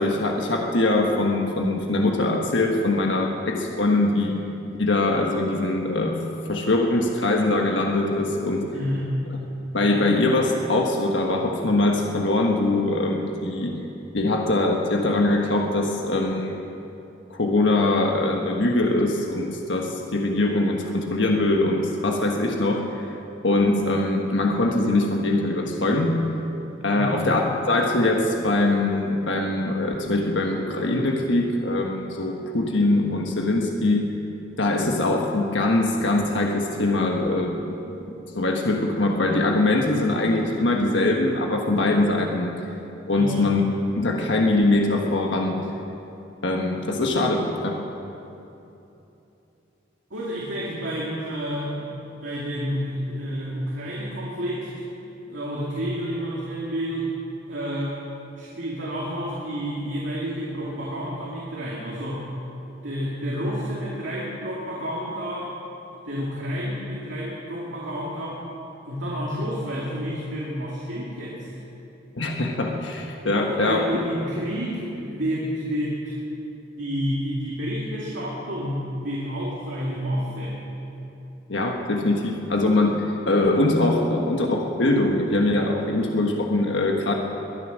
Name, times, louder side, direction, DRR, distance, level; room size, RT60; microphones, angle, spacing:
voice 1, 0.0-4.3 4.8-6.2 6.5-8.6 9.7-13.7 14.1-16.6 17.3-23.1 23.4-26.2 26.8-34.1 34.6-37.7 38.3-42.5 43.1-43.6 44.0-45.5 46.4-47.8 72.1-73.8 81.5-87.1, left 2 dB, 75° left, 1 dB, 1.4 m, -22 dB
voice 2, 8.7-9.1 26.9-27.2 43.1-43.5 50.1-51.9 52.2-54.7 55.2-57.2 57.5-58.0 58.3-62.3 62.8-65.6 66.1-68.5 68.9-71.6 73.4-76.1 76.8-80.6, equal, 80° right, -6 dB, 2.5 m, -30 dB
21.5 x 9.8 x 6.4 m, 2.9 s
head